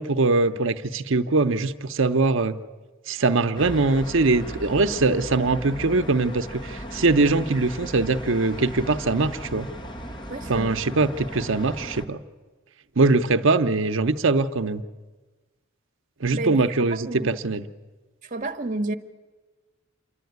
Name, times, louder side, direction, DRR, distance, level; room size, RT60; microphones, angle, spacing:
voice 1, 0.0-2.6 3.1-9.7 10.5-12.2 13.0-14.8 16.2-17.7, right 3 dB, 60° right, 0.8 m, -22 dB
sound 1, 3.5-12.1, equal, 20° left, 1.2 m, -36 dB
voice 2, 10.3-10.8 16.3-16.7 17.0-17.4 18.3-19.0, right 2 dB, 40° right, 1.2 m, -30 dB
27.0 x 11.5 x 9.4 m
head